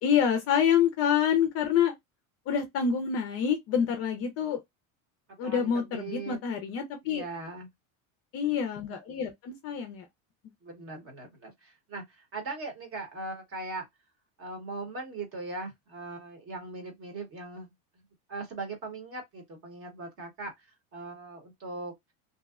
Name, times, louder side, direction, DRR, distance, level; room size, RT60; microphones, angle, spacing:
voice 1, 0.0-1.9 2.5-4.6 5.4-7.2 8.3-10.1, left 8 dB, 35° left, 0.4 m, -27 dB
voice 2, 5.4-6.4 7.0-7.7 10.6-13.9 14.4-17.7 18.3-20.5 20.9-21.9, right 3 dB, 30° right, 1.0 m, -39 dB
2.6 x 2.0 x 2.3 m
supercardioid pair, 145°, 42 cm